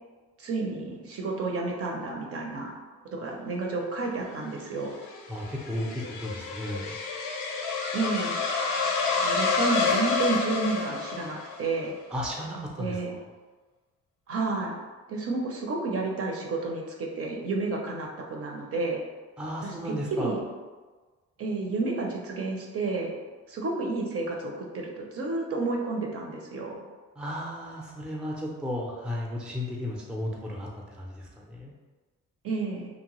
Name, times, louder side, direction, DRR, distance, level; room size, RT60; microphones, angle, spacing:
voice 1, 0.4-2.8 3.1-4.9 7.9-8.4 9.2-12.0 12.8-13.2 14.3-14.7 15.1-19.0 19.6-20.4 21.4-23.1 23.5-26.8 32.4-32.9, right 3 dB, 50° right, 0 dB, 0.6 m, -31 dB
sound 1, 4.6-11.7, left 4 dB, 85° left, 0.5 m, -29 dB
voice 2, 5.3-6.9 12.1-13.0 19.4-20.3 27.2-30.7 31.0-31.7, left 1 dB, 5° right, -2 dB, 0.5 m, -34 dB
2.8 x 2.1 x 2.9 m, 1.3 s
cardioid pair, 90°, 30 cm